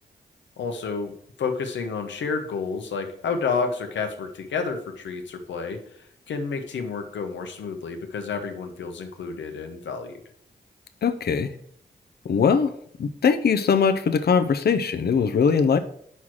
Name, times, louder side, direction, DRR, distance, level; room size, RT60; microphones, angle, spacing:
voice 1, 0.6-1.1 1.4-5.8 6.3-10.2, left 5 dB, 85° left, 5 dB, 1.0 m, -30 dB
voice 2, 11.0-11.5 12.2-12.7 13.0-15.8, left 6 dB, 60° left, 9 dB, 0.7 m, -21 dB
5.6 x 4.7 x 6.1 m, 0.66 s
cardioid pair, 50°, 18 cm